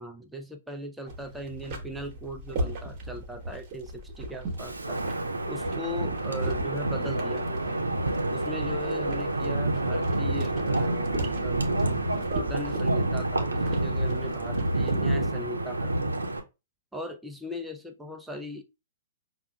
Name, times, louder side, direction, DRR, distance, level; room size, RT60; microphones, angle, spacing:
voice 1, 0.0-5.0 5.5-7.9 8.3-16.2 16.9-18.6, equal, 5° right, 4 dB, 0.4 m, -39 dB
sound 1, 1.1-15.2, right 1 dB, 35° right, 1.0 m, -38 dB
Wind, 4.6-16.4, right 2 dB, 80° right, 0.6 m, -28 dB
5.7 x 2.3 x 2.3 m, 0.27 s
figure-of-eight pair, 115°, 0 cm